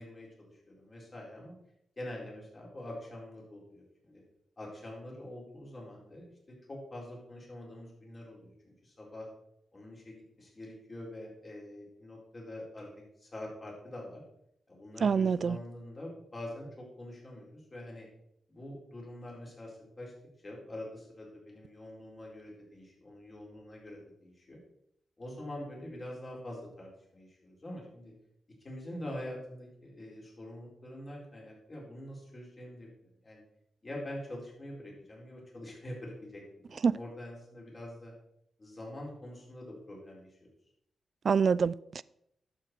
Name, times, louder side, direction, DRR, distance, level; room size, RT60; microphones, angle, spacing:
voice 1, 0.0-1.6 2.0-4.2 4.6-9.3 9.7-12.9 13.2-14.2 14.7-18.1 18.5-20.1 20.4-24.6 25.2-28.1 28.6-33.4 33.8-38.1 38.6-40.5, left 1 dB, 30° left, 4.4 m, -45 dB
voice 2, 15.0-15.6 36.8-37.0 41.3-42.0, right 6 dB, 55° right, 0.3 m, -26 dB
11.5 x 7.4 x 4.6 m
cardioid pair, 95°, 0 cm